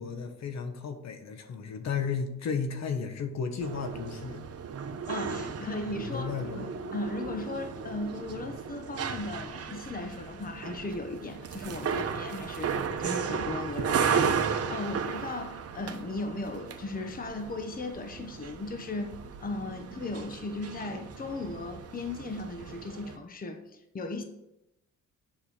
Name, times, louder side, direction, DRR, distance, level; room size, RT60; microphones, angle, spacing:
voice 1, 0.0-4.4 6.0-6.7, left 5 dB, 60° left, 7 dB, 1.4 m, -34 dB
sound 1, 3.6-23.2, right 6 dB, 55° right, 1.0 m, -35 dB
voice 2, 5.1-19.1 19.4-24.2, left 2 dB, 30° left, 6 dB, 1.1 m, -37 dB
7.5 x 6.5 x 6.5 m, 0.88 s
cardioid pair, 90°, 30 cm